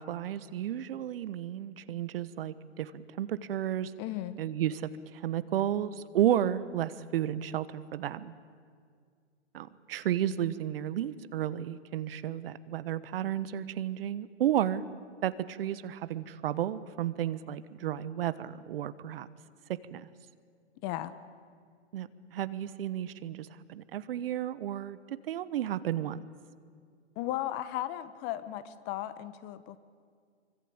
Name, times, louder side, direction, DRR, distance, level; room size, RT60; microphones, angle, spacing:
voice 1, 0.0-3.9 4.4-8.3 9.5-14.8 15.2-19.3 19.9-20.1 21.9-26.2, right 11 dB, 55° right, 15 dB, 1.2 m, -32 dB
voice 2, 4.0-4.4 20.8-21.1 27.2-29.8, left 13 dB, 30° left, 13 dB, 1.3 m, -35 dB
25.5 x 24.5 x 8.7 m, 2.1 s
hypercardioid pair, 125°, 35 cm